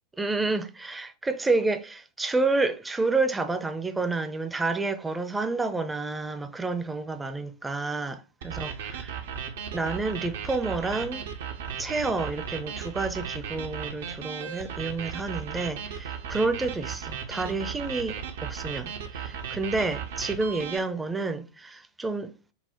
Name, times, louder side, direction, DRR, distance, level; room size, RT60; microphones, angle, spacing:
voice 1, 0.2-9.2 9.7-11.2 11.8-22.3, right 3 dB, 10° right, 0.5 m, -29 dB
sound 1, 8.4-20.8, right 7 dB, 60° right, 0.6 m, -36 dB
5.5 x 2.1 x 2.8 m
figure-of-eight pair, 90°, 0 cm